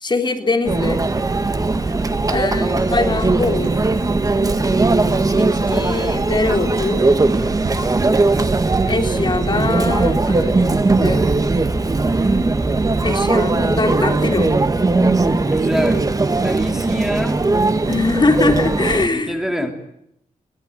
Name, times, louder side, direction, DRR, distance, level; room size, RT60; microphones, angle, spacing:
voice 1, 0.0-1.0 2.3-3.8 5.4-7.1 8.9-11.3 13.0-14.5 17.9-19.4, left 3 dB, 30° left, 5 dB, 3.4 m, -22 dB
Conversation / Chatter / Crowd, 0.6-19.1, right 3 dB, 25° right, 1.7 m, -18 dB
voice 2, 1.9-2.4 15.4-16.0 16.4-17.4 19.0-19.7, equal, 5° right, 5 dB, 2.8 m, -27 dB
sound 1, 3.1-5.2 6.9-9.3, right 5 dB, 70° right, 6.3 m, -37 dB
23.0 x 21.0 x 9.1 m, 0.76 s
wide cardioid pair, 110°, 14 cm